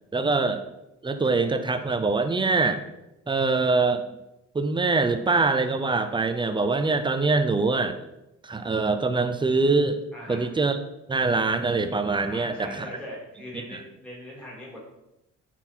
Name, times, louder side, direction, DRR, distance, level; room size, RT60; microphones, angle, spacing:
voice 1, 0.1-0.6 1.0-2.8 3.3-4.0 4.5-8.0 8.4-10.0 10.3-10.8 11.1-12.9 13.5-13.8, right 3 dB, 15° right, 9 dB, 0.7 m, -24 dB
voice 2, 10.1-10.5 12.2-14.8, equal, 5° left, -5 dB, 3.1 m, -40 dB
9.6 x 4.5 x 4.5 m, 0.91 s
cardioid pair, 90°, 30 cm